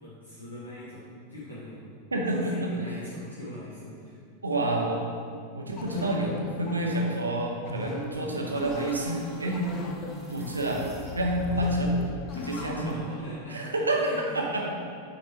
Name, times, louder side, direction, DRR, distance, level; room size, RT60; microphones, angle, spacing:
voice 1, 0.0-1.8 2.3-4.2 12.5-14.4, equal, 80° left, -10 dB, 1.4 m, -40 dB
voice 2, 2.1-2.7 4.4-5.0 5.5-9.7 10.3-10.8 11.1-11.9 12.3-13.0 13.5-14.7, right 1 dB, 75° right, 0 dB, 0.9 m, -28 dB
sound 1, 5.8-13.3, left 2 dB, 35° left, 0.7 m, -40 dB
sound 2, 8.1-12.2, left 3 dB, 15° right, 1.1 m, -42 dB
8.9 x 4.3 x 3.1 m, 2.3 s
figure-of-eight pair, 90°, 0 cm